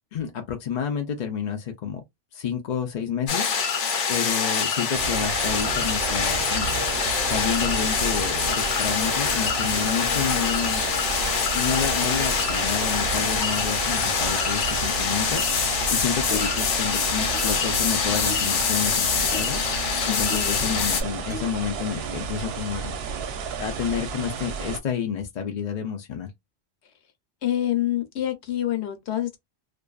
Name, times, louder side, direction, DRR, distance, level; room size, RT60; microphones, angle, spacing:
voice 1, 0.1-2.0 2.3-3.5 4.1-6.7 7.3-10.8 11.5-15.4 15.9-19.6 20.1-23.0 23.6-26.3, left 7 dB, 55° left, 0.5 m, -30 dB
sound 1, 3.3-21.0, left 6 dB, 90° left, 1.1 m, -25 dB
sound 2, 4.9-24.8, right 6 dB, 65° right, 0.7 m, -32 dB
Clock, 16.3-16.5 17.3-17.5 18.3-18.5 19.3-19.5 20.3-20.5 21.3-21.6, equal, 10° right, 0.7 m, -36 dB
voice 2, 20.0-20.8 27.4-29.4, left 12 dB, 70° left, 0.9 m, -27 dB
2.5 x 2.3 x 2.3 m
omnidirectional pair, 1.2 m